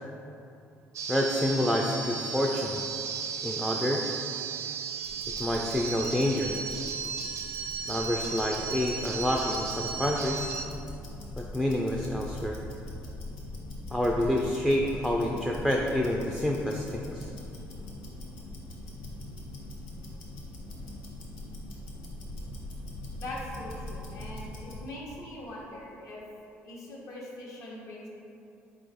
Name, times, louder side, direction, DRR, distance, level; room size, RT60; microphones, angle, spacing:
sound 1, 0.9-10.6, right 5 dB, 60° right, 0.4 m, -35 dB
voice 1, 1.1-2.8 3.4-4.0 5.4-6.6 7.9-10.5 11.4-12.6 13.9-17.3, left 1 dB, 5° left, -1 dB, 0.3 m, -28 dB
Tick-tock, 5.0-24.9, left 1 dB, 85° left, 0.7 m, -42 dB
voice 2, 23.2-26.2 26.6-28.1, left 1 dB, 65° left, -4 dB, 1.0 m, -41 dB
4.2 x 2.4 x 3.9 m, 2.7 s
supercardioid pair, 70°, 6 cm